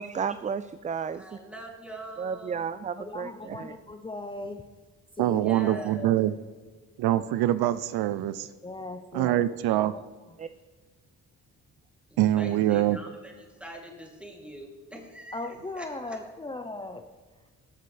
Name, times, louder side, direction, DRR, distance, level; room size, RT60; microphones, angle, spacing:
voice 1, 0.0-1.4 2.2-3.7 10.4-10.5, right 6 dB, 20° right, 13 dB, 0.3 m, -33 dB
voice 2, 1.1-2.6 5.3-6.1 12.1-15.5 15.7-16.2, right 1 dB, 5° right, 0 dB, 2.9 m, -44 dB
voice 3, 3.0-4.6 5.2-6.1 8.6-9.4 15.3-17.1, left 2 dB, 15° left, 6 dB, 0.7 m, -38 dB
voice 4, 5.2-6.3 7.0-8.5 9.1-9.9 12.2-13.0, right 13 dB, 80° right, 14 dB, 0.5 m, -24 dB
17.5 x 6.7 x 3.3 m, 1.5 s
supercardioid pair, 55°, 37 cm